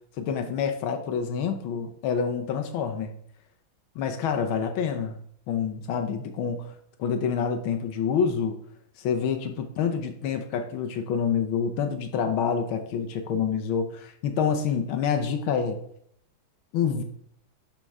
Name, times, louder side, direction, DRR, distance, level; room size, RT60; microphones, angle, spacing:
voice 1, 0.2-3.1 4.0-5.2 5.5-6.7 7.0-8.6 9.0-15.8 16.7-17.0, left 6 dB, 85° left, 7 dB, 1.7 m, -27 dB
11.5 x 4.5 x 3.6 m, 0.69 s
omnidirectional pair, 2.2 m